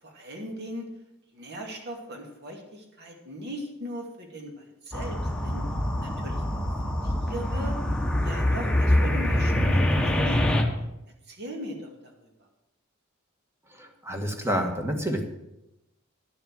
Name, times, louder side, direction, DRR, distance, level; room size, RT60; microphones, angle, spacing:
voice 1, 0.0-0.9 1.3-5.6 6.0-6.6 7.0-7.7 8.2-10.6 11.3-12.3, equal, 55° right, 2 dB, 2.4 m, -39 dB
sound 1, 4.9-10.6, left 1 dB, 5° left, 1.2 m, -25 dB
voice 2, 13.8-15.2, equal, 10° right, 4 dB, 1.5 m, -28 dB
11.0 x 6.8 x 7.7 m, 0.89 s
head